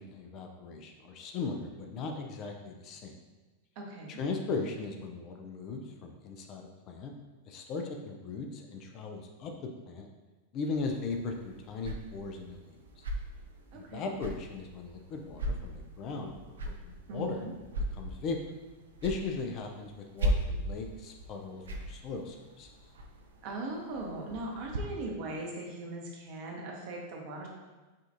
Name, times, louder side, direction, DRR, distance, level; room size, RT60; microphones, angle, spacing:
voice 1, 0.0-3.1 4.2-7.1 7.5-9.5 9.9-10.1 10.5-13.1 13.7-17.5 18.0-18.4 19.0-22.7, left 4 dB, 35° left, 3 dB, 0.4 m, -38 dB
voice 2, 3.8-4.2 13.7-14.2 17.1-17.5 23.4-27.5, right 2 dB, 45° right, -1 dB, 0.8 m, -39 dB
sound 1, 10.7-24.8, right 1 dB, 65° right, 0.4 m, -39 dB
4.9 x 2.4 x 2.6 m, 1.2 s
figure-of-eight pair, 90°, 0 cm